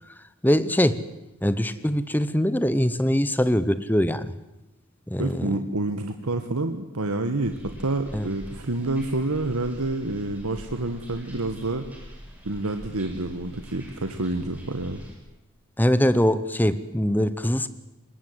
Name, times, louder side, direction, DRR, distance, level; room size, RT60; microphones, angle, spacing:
voice 1, 0.4-1.0 1.4-4.3 5.1-5.6 8.1-8.3 15.8-17.7, equal, 10° left, 14 dB, 0.9 m, -22 dB
voice 2, 5.2-11.9 12.4-15.0, right 2 dB, 90° right, 7 dB, 1.4 m, -28 dB
sound 1, 7.4-15.1, equal, 5° right, 5.6 m, -44 dB
25.5 x 21.0 x 8.1 m, 0.97 s
head